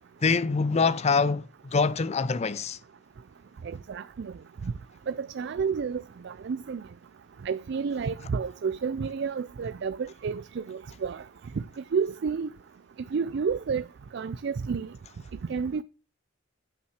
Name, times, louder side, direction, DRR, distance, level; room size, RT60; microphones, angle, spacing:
voice 1, 0.2-1.4 1.7-2.8, left 4 dB, 35° left, 0.4 m, -24 dB
voice 2, 3.6-4.3 4.6-4.7 5.1-6.8 7.4-11.2 11.9-12.5 13.1-13.8 14.1-14.9 15.5-15.8, right 5 dB, 60° right, 0.4 m, -30 dB
9.5 x 5.8 x 6.3 m
head